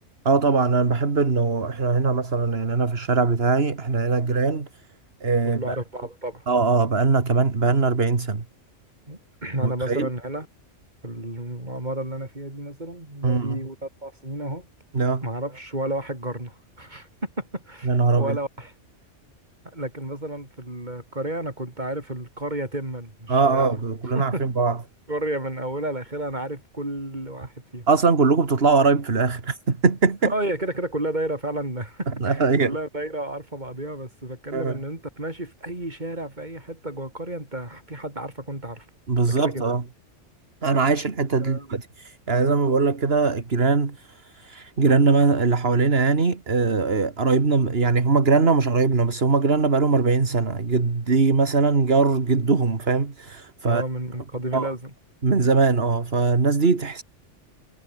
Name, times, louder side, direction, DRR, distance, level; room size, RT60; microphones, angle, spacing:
voice 1, 0.3-4.7 5.2-5.8 6.5-8.4 9.6-10.1 13.2-13.6 14.9-15.2 17.9-18.4 23.3-24.8 27.9-30.3 32.2-32.7 34.5-34.8 39.1-39.8 40.6-53.8 54.5-54.7 55.2-57.0, right 4 dB, 55° right, 2.3 m, -21 dB
voice 2, 5.5-6.5 9.1-10.5 11.0-14.7 15.2-18.7 19.6-23.8 24.1-24.5 25.1-27.9 30.3-38.9 39.3-39.6 41.4-41.7 53.6-54.9, right 1 dB, 35° right, 5.7 m, -31 dB
omnidirectional pair, 1.2 m